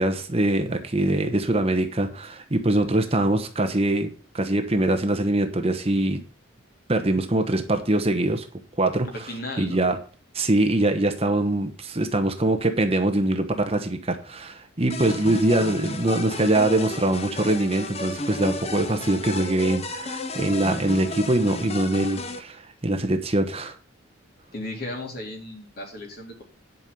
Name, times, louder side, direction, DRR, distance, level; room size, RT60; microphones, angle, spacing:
voice 1, 0.0-4.1 4.3-6.2 6.9-8.4 8.8-9.1 9.6-10.0 10.3-23.7, right 1 dB, 30° right, 6 dB, 1.1 m, -23 dB
voice 2, 9.1-9.9 14.9-15.3 24.5-26.4, left 1 dB, 45° left, 0 dB, 3.5 m, -36 dB
sound 1, 14.9-22.4, left 2 dB, 30° left, 0.9 m, -33 dB
10.5 x 5.5 x 6.8 m, 0.39 s
head